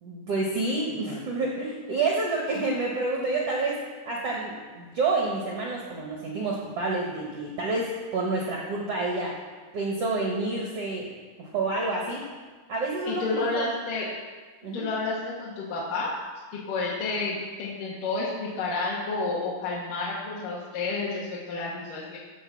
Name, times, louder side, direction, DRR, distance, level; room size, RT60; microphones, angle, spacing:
voice 1, 0.0-3.8 4.0-9.4 9.7-11.1 11.4-12.2 12.7-13.7 14.6-14.8, right 3 dB, 85° right, -2 dB, 1.3 m, -28 dB
voice 2, 13.1-14.1 14.7-16.2 16.5-22.2, left 3 dB, 60° left, -6 dB, 2.6 m, -30 dB
14.0 x 5.3 x 7.0 m, 1.4 s
omnidirectional pair, 4.9 m